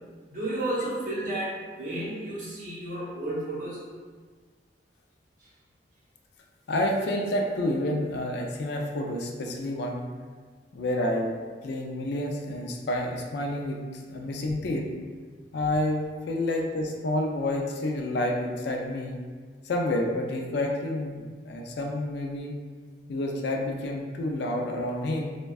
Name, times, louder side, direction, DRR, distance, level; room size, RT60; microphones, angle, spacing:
voice 1, 0.3-3.8 5.4-5.5, right 1 dB, 50° right, -7 dB, 0.9 m, -32 dB
voice 2, 6.7-10.1 10.7-11.3 11.6-14.9 15.5-19.2 19.6-22.5 23.1-25.4, left 1 dB, 65° left, 1 dB, 0.4 m, -29 dB
3.4 x 2.2 x 2.3 m, 1.5 s
head